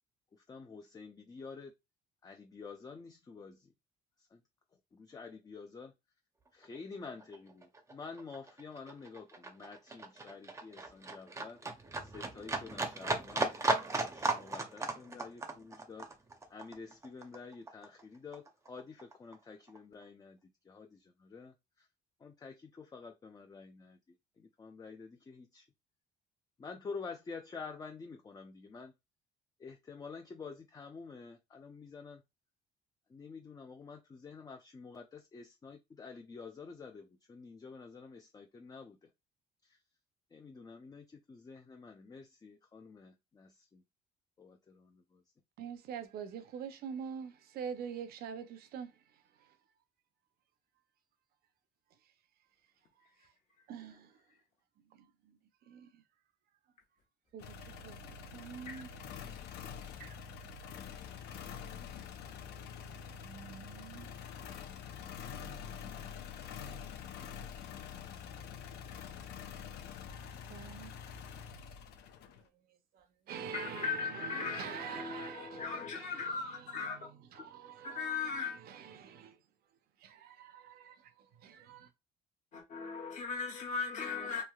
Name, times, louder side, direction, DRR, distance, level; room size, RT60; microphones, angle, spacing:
voice 1, 0.5-1.7 2.2-3.6 4.3-4.4 4.9-5.9 6.5-11.6 12.0-13.5 14.0-16.1 16.5-20.4 20.7-21.5 22.2-24.0 24.4-25.6 26.6-28.9 29.6-32.2 33.1-39.0 40.3-43.8 44.4-45.2, left 4 dB, 20° left, 0.5 m, -49 dB
Livestock farm animals working animals, 6.6-6.8 7.0-18.0 18.3-19.4 19.7-19.8, right 2 dB, 15° right, 0.6 m, -36 dB
voice 2, 45.6-48.9 49.4-49.5 53.7-54.1 54.9-55.4 55.7-56.0 57.3-57.6 57.8-58.9 59.2-60.2 63.2-64.1 67.3-67.4 70.5-71.0 72.9-79.4 80.0-81.9, right 7 dB, 65° right, 0.6 m, -46 dB
sound 1, 57.4-72.5, left 7 dB, 80° left, 0.6 m, -46 dB
voice 3, 73.5-77.0 77.8-78.6 82.5-84.4, left 5 dB, 45° left, 1.0 m, -38 dB
3.2 x 2.6 x 2.3 m
cardioid pair, 110°, 17 cm